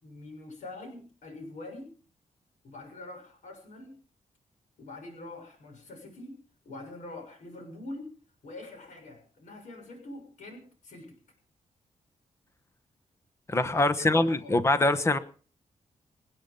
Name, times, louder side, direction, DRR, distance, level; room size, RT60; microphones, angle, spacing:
voice 1, 0.0-1.9 2.6-4.0 4.8-6.4 6.7-8.1 8.4-11.2 13.7-14.6, left 2 dB, 80° left, 3 dB, 6.8 m, -44 dB
voice 2, 13.5-15.2, left 2 dB, 20° left, 11 dB, 1.1 m, -24 dB
26.0 x 8.9 x 5.4 m, 0.40 s
wide cardioid pair, 175°, 13 cm